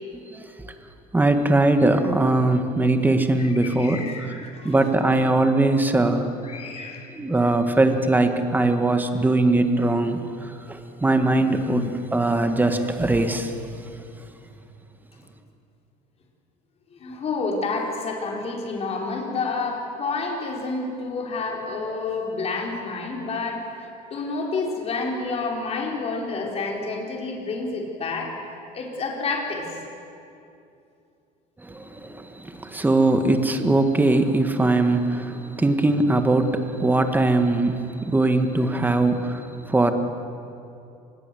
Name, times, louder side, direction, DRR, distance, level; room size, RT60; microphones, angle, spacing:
voice 1, 1.1-4.0 4.6-6.3 7.2-13.5 31.6-39.9, right 2 dB, 10° right, 7 dB, 2.0 m, -21 dB
voice 2, 3.4-4.7 6.4-7.1 16.9-28.3 28.7-29.7, left 3 dB, 40° left, 0 dB, 4.8 m, -29 dB
25.0 x 20.5 x 8.0 m, 2.6 s
cardioid pair, 120°, 17 cm